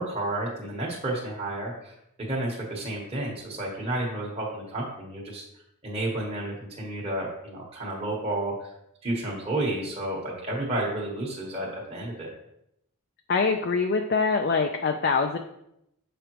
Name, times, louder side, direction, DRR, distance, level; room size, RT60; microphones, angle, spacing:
voice 1, 0.0-5.4 5.8-8.7 9.0-12.3, right 1 dB, 25° right, -4 dB, 1.2 m, -31 dB
voice 2, 13.3-15.4, left 4 dB, 45° left, 4 dB, 0.4 m, -24 dB
7.1 x 5.0 x 3.0 m, 0.79 s
head